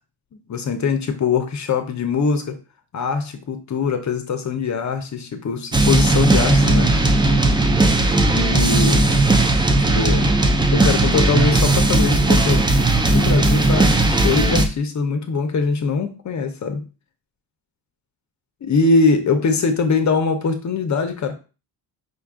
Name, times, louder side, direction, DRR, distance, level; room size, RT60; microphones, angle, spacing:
voice 1, 0.3-2.6 2.9-6.9 8.2-9.1 9.5-9.6 10.0-10.3 10.7-12.7 13.1-16.8 18.6-21.4, left 4 dB, 40° left, 6 dB, 0.7 m, -22 dB
sound 1, 5.7-14.7, right 2 dB, 10° right, 0.4 m, -17 dB
5.1 x 2.4 x 3.5 m, 0.33 s
cardioid pair, 115°, 44 cm